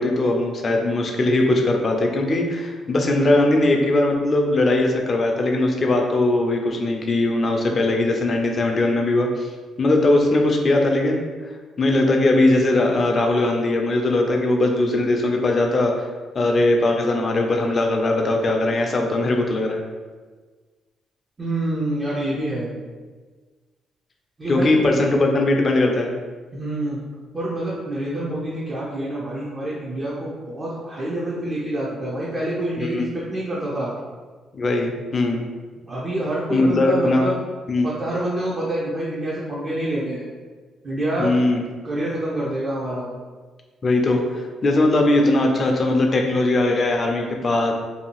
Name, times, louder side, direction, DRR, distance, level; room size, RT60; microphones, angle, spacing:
voice 1, 0.0-9.5 9.8-11.2 11.8-16.1 16.3-19.8 24.5-26.1 32.8-33.1 34.5-35.5 36.5-37.3 37.7-37.9 41.2-41.6 43.8-47.7, left 2 dB, 40° left, 2 dB, 0.4 m, -20 dB
voice 2, 21.4-22.7 24.4-25.0 26.5-27.0 27.3-33.9 35.9-37.4 37.8-40.2 40.8-41.3 41.8-43.1, right 1 dB, 30° right, -7 dB, 0.6 m, -27 dB
2.7 x 2.3 x 2.9 m, 1.4 s
cardioid pair, 90°, 0 cm